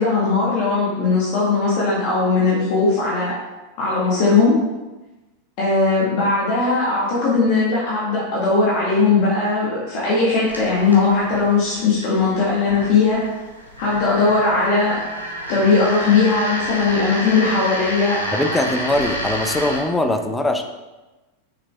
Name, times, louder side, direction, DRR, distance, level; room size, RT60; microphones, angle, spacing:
voice 1, 0.0-3.3 3.8-4.6 5.6-13.2 13.8-15.0 15.5-18.4, left 4 dB, 45° left, -6 dB, 1.8 m, -18 dB
sound 1, 10.5-19.8, equal, 90° left, 1.6 m, -30 dB
voice 2, 18.3-20.6, left 1 dB, 10° left, 6 dB, 0.7 m, -21 dB
6.3 x 6.0 x 3.5 m, 1.1 s
figure-of-eight pair, 90°, 0 cm